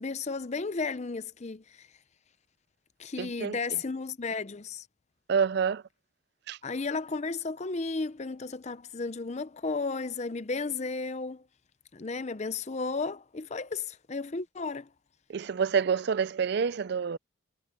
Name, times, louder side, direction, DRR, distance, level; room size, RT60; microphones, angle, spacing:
voice 1, 0.0-1.9 3.0-4.9 6.6-11.4 11.9-14.9, left 4 dB, 30° left, 0.6 m, -34 dB
voice 2, 3.2-3.6 5.3-5.8 6.5-6.6 15.3-17.2, right 6 dB, 50° right, 0.4 m, -27 dB
head